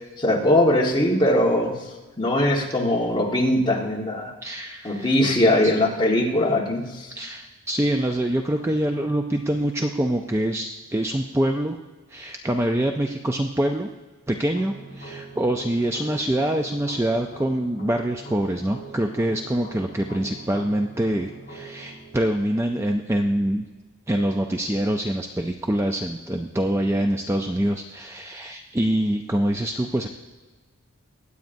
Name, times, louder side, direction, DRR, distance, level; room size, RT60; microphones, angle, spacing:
voice 1, 0.2-1.7 2.2-4.3 4.8-7.1, left 1 dB, 20° left, -2 dB, 1.4 m, -21 dB
voice 2, 4.4-5.2 5.6-5.7 7.2-11.8 12.1-13.9 14.3-23.6 24.1-30.1, right 1 dB, 10° right, 3 dB, 0.4 m, -25 dB
sound 1, 14.5-23.5, right 3 dB, 40° left, 4.0 m, -43 dB
22.5 x 8.4 x 2.6 m, 1.3 s
head